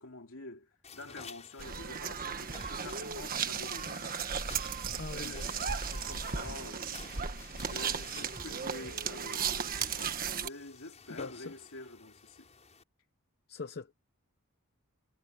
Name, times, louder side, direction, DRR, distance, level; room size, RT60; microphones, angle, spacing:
voice 1, 0.0-4.6 5.1-5.6 5.9-7.0 7.6-12.5, left 2 dB, 70° left, 3.1 m, -48 dB
sound 1, 0.8-12.8, left 5 dB, 30° left, 5.9 m, -52 dB
sound 2, 1.6-10.5, right 6 dB, 40° right, 1.4 m, -36 dB
sound 3, 2.6-2.7 3.3-3.7 4.5-5.0 5.5-5.6 6.2-6.6 6.9-7.5 8.3-8.5 8.8-9.0 9.3-9.4 9.8-10.1, equal, 10° left, 7.5 m, -52 dB
voice 2, 4.9-5.3 11.1-11.5 13.5-13.9, left 4 dB, 50° left, 0.8 m, -42 dB
head